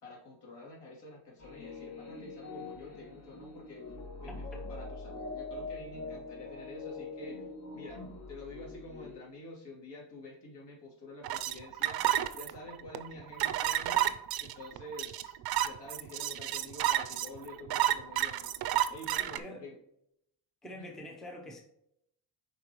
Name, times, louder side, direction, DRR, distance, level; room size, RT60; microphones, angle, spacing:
voice 1, 0.0-4.0 4.2-7.4 7.7-8.0 8.3-15.4 15.6-18.6 18.9-19.8 20.7-20.9, left 2 dB, 65° left, -3 dB, 2.8 m, -48 dB
sound 1, 1.4-9.2, left 3 dB, 40° left, 1.8 m, -43 dB
sound 2, 11.2-19.4, right 13 dB, 55° right, 0.6 m, -30 dB
voice 2, 19.1-19.6 20.6-21.6, left 1 dB, ahead, 2 dB, 0.6 m, -45 dB
7.9 x 5.1 x 3.0 m, 0.76 s
cardioid pair, 175°, 45 cm